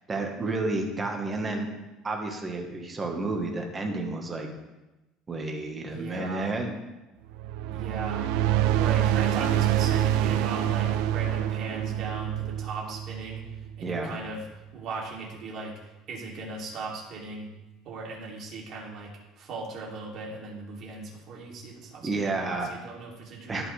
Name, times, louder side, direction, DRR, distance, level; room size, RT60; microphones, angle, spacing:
voice 1, 0.1-1.7 2.0-4.5 5.3-6.7 13.8-14.2 22.0-22.7 23.5-23.7, right 2 dB, 15° right, 2 dB, 1.3 m, -31 dB
voice 2, 5.9-6.5 7.7-8.3 8.7-13.4 13.8-14.4 14.7-17.5 17.8-23.7, right 3 dB, 45° right, -3 dB, 2.8 m, -38 dB
sound 1, 7.3-13.9, right 11 dB, 70° right, 0.4 m, -26 dB
17.0 x 5.8 x 3.3 m, 1.0 s
cardioid pair, 160°, 0 cm